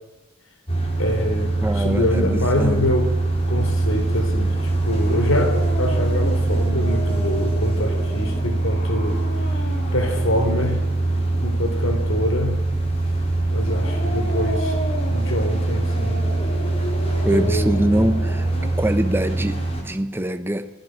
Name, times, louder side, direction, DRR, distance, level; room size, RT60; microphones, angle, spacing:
sound 1, 0.7-19.8, right 2 dB, 30° left, 4.2 m, -23 dB
voice 1, 1.0-3.1 3.5-10.8 11.4-12.6 13.5-14.8 15.1-16.3 17.3-17.9, left 1 dB, 65° left, 3.6 m, -25 dB
voice 2, 1.6-2.9 17.2-18.5 18.8-20.7, right 1 dB, 10° right, 1.1 m, -23 dB
sound 2, 1.8-18.7, equal, 45° left, 4.2 m, -34 dB
28.0 x 19.5 x 6.4 m
head